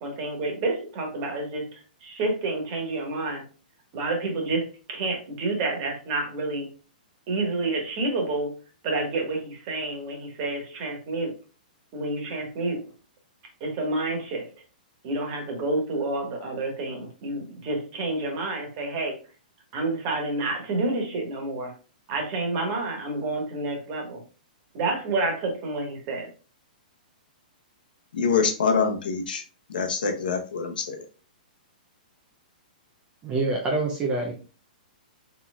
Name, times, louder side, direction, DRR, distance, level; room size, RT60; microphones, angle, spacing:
voice 1, 0.0-3.4 3.9-6.7 7.3-8.5 8.8-11.3 11.9-12.8 13.6-14.5 15.0-19.2 19.7-21.7 22.1-24.2 24.7-26.3, right 2 dB, 35° right, 1 dB, 1.6 m, -29 dB
voice 2, 28.1-29.4 29.7-31.0, left 5 dB, 80° left, 4 dB, 1.0 m, -25 dB
voice 3, 33.2-34.3, right 3 dB, 15° right, 0 dB, 0.6 m, -26 dB
4.3 x 4.2 x 2.4 m, 0.37 s
hypercardioid pair, 160°, 5 cm